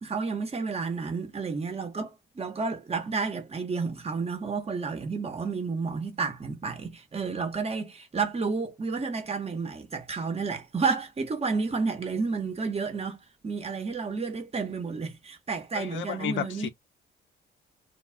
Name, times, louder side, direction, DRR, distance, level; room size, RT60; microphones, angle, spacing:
voice 1, 0.0-16.7, right 4 dB, 30° right, 1.0 m, -31 dB
voice 2, 15.7-16.7, left 10 dB, 75° left, 0.6 m, -32 dB
2.3 x 2.3 x 3.2 m
cardioid pair, 90°, 20 cm